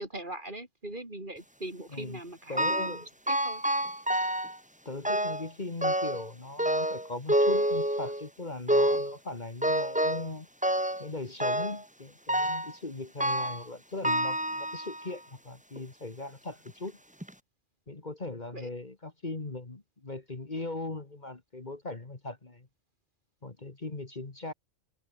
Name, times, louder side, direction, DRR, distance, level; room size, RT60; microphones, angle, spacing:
voice 1, 0.0-3.6 18.5-18.7, right 1 dB, 40° right, 5.0 m, -41 dB
voice 2, 2.5-3.1 4.9-10.5 11.0-17.0 17.9-22.7 23.4-24.5, left 2 dB, 35° left, 2.1 m, -39 dB
sound 1, 2.6-3.0 3.3-4.6 5.0-5.5 5.8-6.3 6.6-8.3 8.7-9.2 9.6-10.3 10.6-11.1 11.4-11.8 12.3-12.7 13.2-13.7 14.0-15.1 15.8-15.9 16.7-16.8 17.2-17.3, right 1 dB, 5° right, 1.7 m, -28 dB
omnidirectional pair, 1.3 m